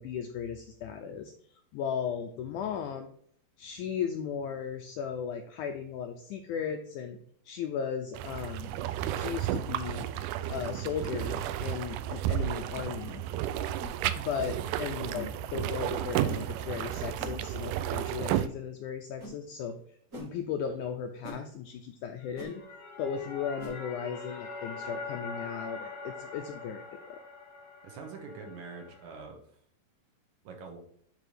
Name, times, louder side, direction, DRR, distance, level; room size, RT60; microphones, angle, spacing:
voice 1, 0.0-1.3 1.7-3.1 3.6-7.2 7.5-8.7 9.1-10.1 10.5-13.2 14.2-22.6 23.0-27.2, left 7 dB, 80° left, 5 dB, 1.8 m, -36 dB
sound 1, 8.1-18.5, right 12 dB, 80° right, 1.9 m, -32 dB
sound 2, 8.6-8.8 9.7-9.9 10.5-10.7 11.6-11.8 12.7-12.9 13.8-13.9 15.1-15.3 16.2-16.5 17.2-17.4 18.2-18.4 19.2-19.4 20.1-20.3 21.2-21.4 22.3-22.5 23.6-23.8, equal, 45° right, 1.0 m, -43 dB
sound 3, 22.2-29.2, left 3 dB, 50° left, 1.1 m, -43 dB
voice 2, 27.8-29.4 30.4-30.8, right 4 dB, 65° right, 2 dB, 2.4 m, -44 dB
9.4 x 3.6 x 5.0 m, 0.63 s
omnidirectional pair, 4.1 m